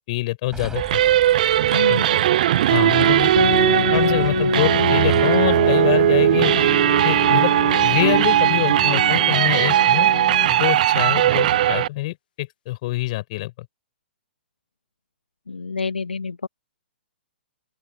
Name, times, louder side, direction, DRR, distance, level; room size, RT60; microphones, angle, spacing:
voice 1, 0.1-1.0 1.8-2.0 2.7-3.3 3.9-6.5 7.0-7.5 7.8-10.1 10.5-13.5, left 19 dB, 40° left, 7.4 m, -25 dB
sound 1, 0.5-9.2, right 4 dB, 10° right, 3.9 m, -40 dB
sound 2, 0.8-11.9, right 12 dB, 45° right, 1.1 m, -18 dB
voice 2, 1.7-2.2 3.0-3.2 15.5-16.5, left 4 dB, 70° left, 1.5 m, -28 dB
sound 3, 3.4-10.8, left 9 dB, 55° left, 1.1 m, -27 dB
open air
figure-of-eight pair, 115°, 6 cm